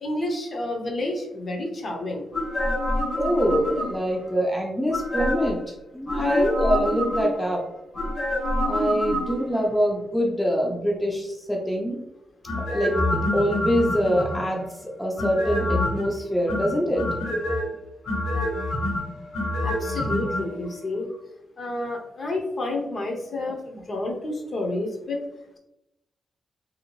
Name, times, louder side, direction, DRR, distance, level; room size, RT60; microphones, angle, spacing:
voice 1, 0.0-2.3 6.1-6.5 19.6-21.1 21.6-25.2, left 2 dB, 45° left, 1 dB, 0.7 m, -29 dB
sound 1, 2.3-4.2 4.9-5.6 6.1-7.5 7.9-9.6 12.4-14.6 15.2-16.1 16.5-17.6 18.0-20.4 20.7-20.8, left 1 dB, 85° left, 1.3 m, -26 dB
voice 2, 3.1-5.6 5.9-7.6 8.6-12.0 12.6-17.1, equal, 5° left, -1 dB, 0.4 m, -24 dB
2.9 x 2.7 x 2.9 m, 0.90 s
cardioid pair, 115°, 0 cm